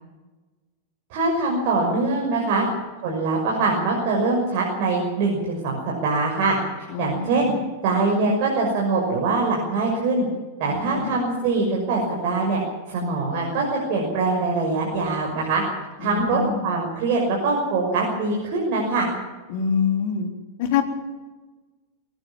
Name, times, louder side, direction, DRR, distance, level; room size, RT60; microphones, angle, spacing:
voice 1, 1.1-2.7 3.0-6.6 7.0-7.5 7.8-10.3 10.6-12.6 12.9-15.6 16.0-19.1, right 3 dB, 45° right, -1 dB, 6.2 m, -23 dB
voice 2, 6.9-7.4 10.7-11.1 16.0-16.7 19.5-20.3 20.6-20.8, left 6 dB, 50° left, 3 dB, 3.8 m, -25 dB
23.0 x 18.0 x 7.3 m, 1.3 s
figure-of-eight pair, 90°, 0 cm